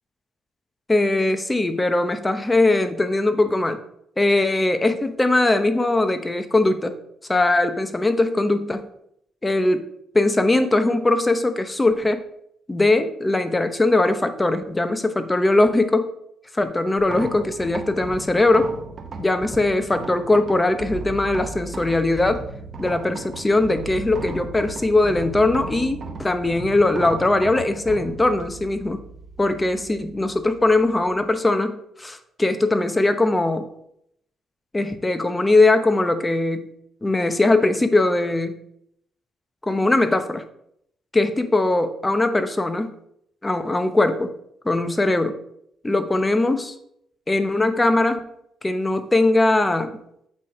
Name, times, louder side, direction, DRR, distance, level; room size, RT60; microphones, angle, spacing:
voice 1, 0.9-3.8 4.2-6.9 7.3-8.9 9.4-9.8 10.1-12.2 12.7-16.1 16.5-18.8 19.2-22.4 22.8-29.0 29.4-33.7 34.7-36.7 37.0-38.5 39.6-40.4 41.1-42.9 43.4-44.3 44.6-45.4 45.8-46.7 47.3-48.3 48.6-49.9, left 2 dB, 15° left, 9 dB, 0.8 m, -20 dB
sound 1, 17.0-31.3, right 4 dB, 45° right, 1.0 m, -36 dB
8.3 x 3.3 x 5.3 m, 0.74 s
cardioid pair, 90°, 0 cm